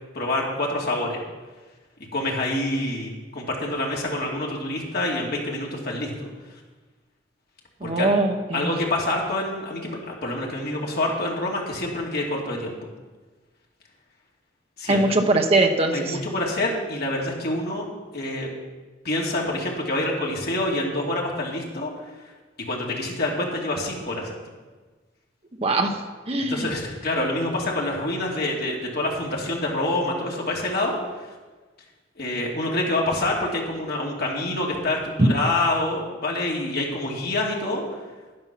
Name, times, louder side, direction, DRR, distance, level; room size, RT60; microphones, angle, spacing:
voice 1, 0.1-1.2 2.1-6.3 7.8-8.1 8.5-12.7 14.8-15.2 15.9-17.9 18.1-18.5 19.0-21.9 22.7-24.3 26.4-31.0 32.2-37.8, left 1 dB, 55° left, -2 dB, 2.5 m, -26 dB
voice 2, 7.8-8.7 14.9-16.2 25.6-26.0 26.3-26.7, right 2 dB, 30° right, 4 dB, 0.9 m, -21 dB
11.0 x 9.6 x 6.0 m, 1.3 s
head